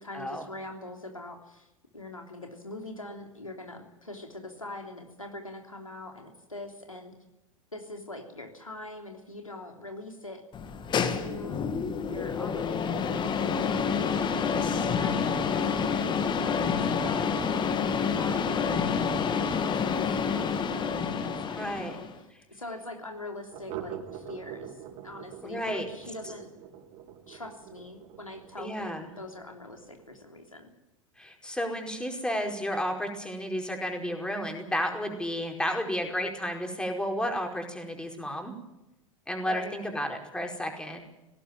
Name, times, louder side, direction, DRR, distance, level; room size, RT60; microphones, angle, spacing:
voice 1, 0.0-1.7 1.9-7.1 7.7-10.4 11.0-11.7 12.0-16.0 16.4-17.8 18.2-26.5 27.3-30.7 39.4-39.9, left 2 dB, 85° left, 3 dB, 3.3 m, -43 dB
sound 1, 10.5-22.2, left 6 dB, 25° left, 2.1 m, -28 dB
voice 2, 21.5-21.9 25.4-25.9 28.6-29.1 31.2-38.5 39.3-41.0, equal, 5° left, 3 dB, 4.8 m, -32 dB
sound 2, 23.5-30.2, right 9 dB, 45° right, 4.3 m, -47 dB
19.0 x 17.5 x 9.1 m, 0.93 s
figure-of-eight pair, 85°, 17 cm